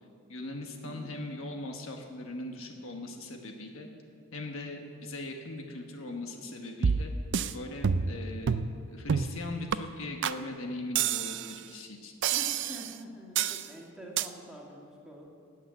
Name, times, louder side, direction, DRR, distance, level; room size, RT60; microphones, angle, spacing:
voice 1, 0.3-3.9 4.3-7.1 7.5-12.1, left 2 dB, 65° left, 3 dB, 1.4 m, -40 dB
voice 2, 0.8-1.2 12.3-15.3, equal, ahead, -3 dB, 2.1 m, -46 dB
sound 1, 6.8-7.5 7.8-8.2 8.5-8.7 9.1-9.4 9.7-9.8 10.2-10.4 11.0-11.6 12.2-12.9 13.4-13.7 14.2-14.3, right 7 dB, 55° right, 0.4 m, -28 dB
18.0 x 6.4 x 8.3 m, 2.3 s
head